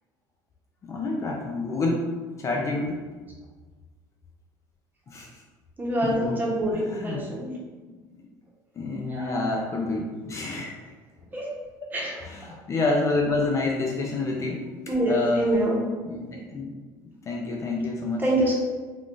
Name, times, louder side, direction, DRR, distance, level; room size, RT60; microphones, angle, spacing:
voice 1, 0.8-3.0 5.1-5.3 6.0-6.4 6.7-7.2 7.9-8.0 8.8-10.8 11.8-11.9 12.2-14.7 15.0-15.6 16.0-16.7 17.3-18.2, left 3 dB, 35° left, -1 dB, 0.4 m, -28 dB
voice 2, 5.8-7.5 9.1-9.2 11.3-11.5 11.9-12.2 12.4-12.5 14.9-15.8 18.2-18.6, right 1 dB, 20° right, -4 dB, 0.9 m, -25 dB
3.4 x 2.4 x 2.5 m, 1.4 s
supercardioid pair, 105°, 9 cm